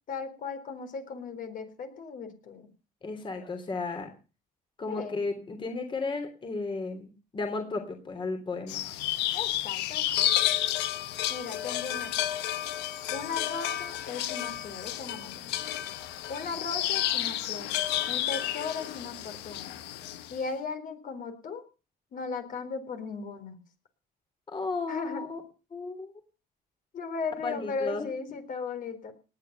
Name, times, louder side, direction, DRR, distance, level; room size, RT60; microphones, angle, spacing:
voice 1, 0.1-2.7 4.9-5.2 9.3-10.3 11.3-12.3 13.1-15.6 16.3-17.8 18.1-19.8 20.3-21.6 22.1-23.6 24.9-25.2 26.9-29.1, left 5 dB, 55° left, 7 dB, 3.9 m, -37 dB
voice 2, 3.0-4.1 4.8-8.9 24.5-25.4 25.7-26.1 27.4-28.1, left 3 dB, 30° left, 6 dB, 3.2 m, -34 dB
sound 1, 8.7-20.4, left 13 dB, 90° left, 1.5 m, -31 dB
19.0 x 10.0 x 6.7 m, 0.35 s
cardioid pair, 110°, 17 cm